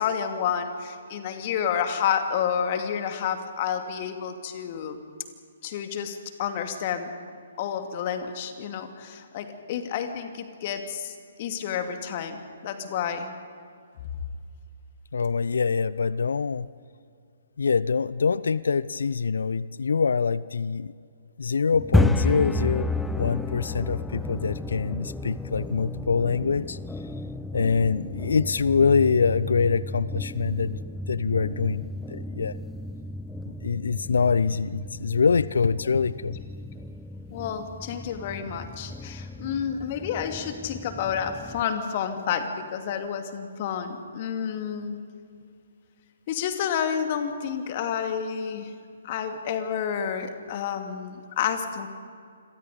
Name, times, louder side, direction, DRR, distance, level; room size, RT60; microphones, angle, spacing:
voice 1, 0.0-5.0 5.6-7.1 7.6-13.3 37.3-45.0 46.3-48.7 49.0-51.9, left 8 dB, 35° left, 6 dB, 2.3 m, -30 dB
voice 2, 15.1-16.7 17.6-20.9 21.4-22.9 23.1-26.8 27.5-30.8 31.1-32.5 33.6-36.4, left 5 dB, 65° left, 19 dB, 0.5 m, -24 dB
sound 1, 21.7-41.6, left 2 dB, 5° left, 0.8 m, -32 dB
28.5 x 23.0 x 5.2 m, 2.3 s
figure-of-eight pair, 130°, 0 cm